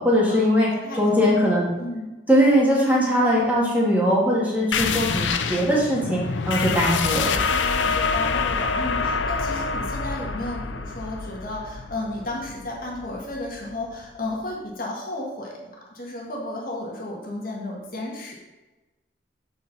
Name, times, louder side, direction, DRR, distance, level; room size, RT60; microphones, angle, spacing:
voice 1, 0.0-0.7 1.0-1.7 2.3-7.4, equal, 10° right, -5 dB, 2.2 m, -20 dB
voice 2, 0.8-1.3 1.8-2.1 7.5-18.3, left 2 dB, 50° left, -2 dB, 1.9 m, -33 dB
sound 1, 4.7-13.9, left 5 dB, 90° left, 0.6 m, -26 dB
13.0 x 4.6 x 4.2 m, 1.1 s
head